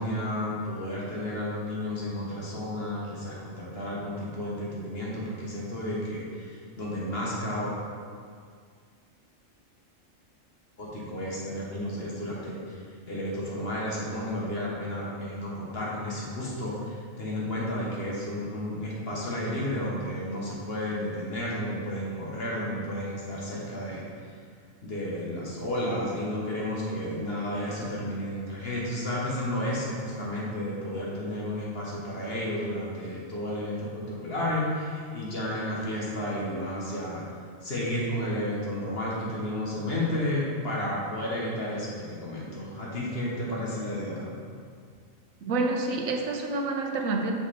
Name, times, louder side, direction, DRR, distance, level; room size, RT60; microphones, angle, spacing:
voice 1, 0.0-7.7 10.8-12.8 13.1-24.0 24.8-37.2 37.6-44.3, left 1 dB, 50° left, -5 dB, 1.6 m, -32 dB
voice 2, 45.4-47.3, right 3 dB, 85° right, 3 dB, 1.1 m, -28 dB
5.8 x 5.5 x 4.2 m, 2.1 s
omnidirectional pair, 1.4 m